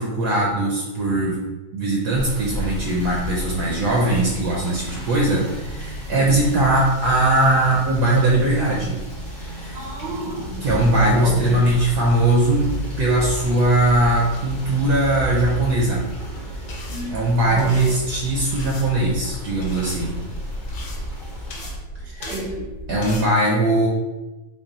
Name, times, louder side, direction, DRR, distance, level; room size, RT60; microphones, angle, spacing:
voice 1, 0.0-1.4 1.7-9.0 9.3-9.8 10.6-16.0 16.7-20.2 22.1-22.3 22.9-23.9, right 1 dB, 70° right, -3 dB, 1.1 m, -20 dB
Rain / Motor vehicle (road), 2.1-21.7, equal, 40° left, 0.8 m, -32 dB
voice 2, 9.7-11.7 16.9-17.1 17.5-17.8 22.2-22.7, right 2 dB, 85° right, -1 dB, 1.5 m, -31 dB
sound 1, 16.7-23.3, left 1 dB, 70° left, 1.1 m, -36 dB
3.7 x 2.2 x 3.8 m, 1.1 s
omnidirectional pair, 2.0 m